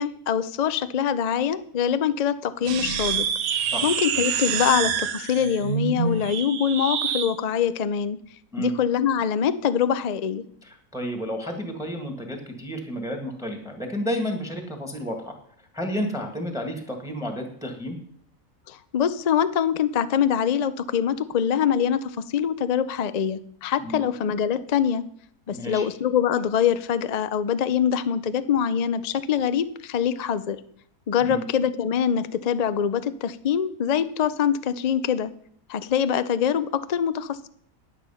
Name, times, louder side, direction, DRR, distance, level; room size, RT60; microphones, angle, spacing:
voice 1, 0.0-3.3 3.8-8.2 8.6-10.4 18.7-25.0 25.5-30.6 31.1-35.3 35.7-37.5, left 8 dB, 70° left, 13 dB, 0.4 m, -24 dB
sound 1, 2.6-7.3, right 7 dB, 80° right, 1.3 m, -27 dB
voice 2, 10.6-15.3 15.7-18.0 23.8-24.0 25.5-25.9 31.2-31.4, equal, ahead, 4 dB, 1.6 m, -31 dB
9.9 x 9.1 x 5.6 m, 0.63 s
omnidirectional pair, 1.5 m